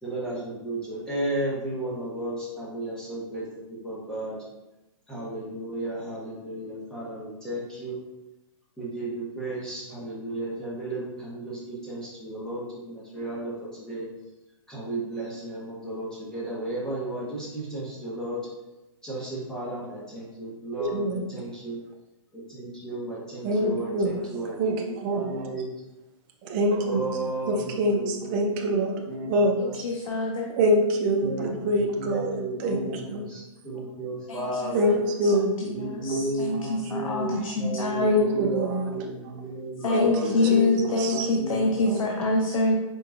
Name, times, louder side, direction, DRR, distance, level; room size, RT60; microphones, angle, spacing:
voice 1, 0.0-3.4 3.7-4.4 5.1-8.0 8.8-14.1 14.7-18.4 19.0-21.8 22.3-25.7 26.9-30.0 31.2-35.0 35.6-41.9, right 1 dB, 5° left, -8 dB, 1.2 m, -34 dB
voice 2, 20.8-21.3 23.4-24.1 24.6-25.5 26.5-27.0 27.5-29.0 29.3-29.5 30.6-33.2 34.7-35.6 36.1-36.2 38.0-38.9 39.9-40.7 41.0-41.3 41.8-42.0, equal, 20° right, 1 dB, 0.4 m, -25 dB
voice 3, 29.6-30.6 34.3-34.7 35.2-38.3 39.8-42.7, left 3 dB, 70° left, 0 dB, 0.7 m, -26 dB
4.9 x 3.7 x 2.5 m, 0.98 s
hypercardioid pair, 160°, 18 cm